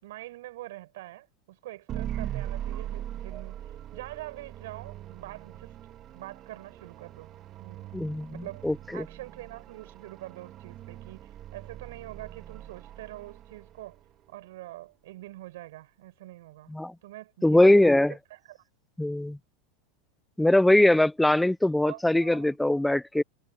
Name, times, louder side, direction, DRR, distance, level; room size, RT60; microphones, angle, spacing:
voice 1, 0.0-3.6 3.9-5.7 6.1-7.3 7.6-7.9 8.3-14.0 14.3-16.7 17.0-18.6 21.8-22.6, right 17 dB, 75° right, 5.5 m, -44 dB
sound 1, 1.9-14.0, right 11 dB, 35° right, 1.6 m, -40 dB
voice 2, 7.9-9.0 16.7-16.9 17.4-18.1 19.0-19.4 20.4-23.2, left 1 dB, 5° left, 0.3 m, -22 dB
supercardioid pair, 140°, 0 cm